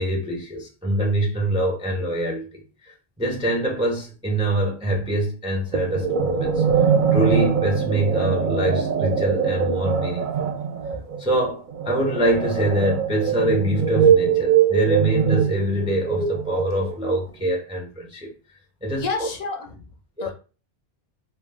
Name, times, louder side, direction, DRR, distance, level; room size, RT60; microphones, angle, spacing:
voice 1, 0.0-10.5 11.2-18.3 18.8-19.3 20.2-20.3, right 1 dB, 10° right, 0.4 m, -24 dB
sound 1, 5.7-17.1, right 7 dB, 60° right, 0.6 m, -22 dB
voice 2, 18.9-20.3, left 4 dB, 50° left, 0.6 m, -30 dB
2.2 x 2.2 x 3.3 m
omnidirectional pair, 1.1 m